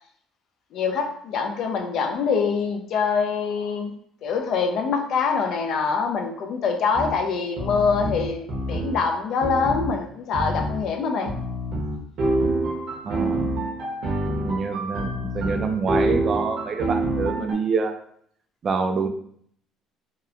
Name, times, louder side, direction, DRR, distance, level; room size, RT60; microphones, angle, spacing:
voice 1, 0.7-3.9 4.2-11.3, left 5 dB, 65° left, 3 dB, 0.4 m, -24 dB
sound 1, 6.9-7.1 7.6-9.0 9.4-9.9 10.3-10.8 11.3-17.5, right 1 dB, 65° right, 0.8 m, -26 dB
voice 2, 13.0-13.5 14.4-18.0 18.6-19.1, right 4 dB, 40° right, 6 dB, 0.3 m, -26 dB
2.8 x 2.0 x 2.4 m, 0.64 s
cardioid pair, 105°, 0 cm